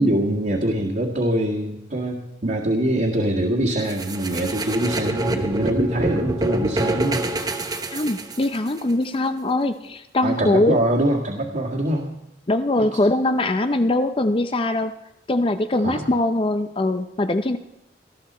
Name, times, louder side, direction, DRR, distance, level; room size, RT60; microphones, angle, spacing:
voice 1, 0.0-7.2 10.2-12.1 12.8-12.9 15.8-16.0, right 1 dB, 50° right, -4 dB, 1.9 m, -23 dB
sound 1, 3.9-8.8, right 2 dB, 20° right, 1.0 m, -26 dB
voice 2, 7.9-10.8 12.5-14.9 15.3-17.6, left 2 dB, 30° left, 9 dB, 0.5 m, -22 dB
19.0 x 13.0 x 4.3 m, 0.86 s
head